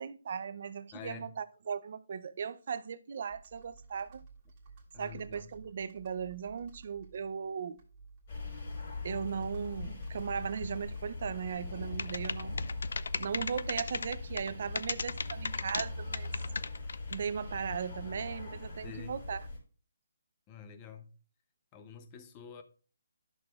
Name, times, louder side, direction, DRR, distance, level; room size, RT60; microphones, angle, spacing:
voice 1, 0.0-4.2 5.0-7.8 9.0-12.6 13.2-16.3 17.1-19.4, right 6 dB, 50° right, 0.6 m, -37 dB
voice 2, 0.9-1.3 4.9-5.5 18.8-19.2 20.5-21.1 21.7-22.6, left 7 dB, 20° left, 0.7 m, -48 dB
Computer keyboard, 3.3-11.9, right 4 dB, 25° right, 1.8 m, -55 dB
sound 1, 8.3-19.6, left 3 dB, 40° left, 4.5 m, -41 dB
sound 2, 12.0-14.5 14.8-15.9 16.1-17.3, left 4 dB, 70° left, 0.4 m, -35 dB
11.5 x 6.4 x 2.4 m
hypercardioid pair, 165°, 0 cm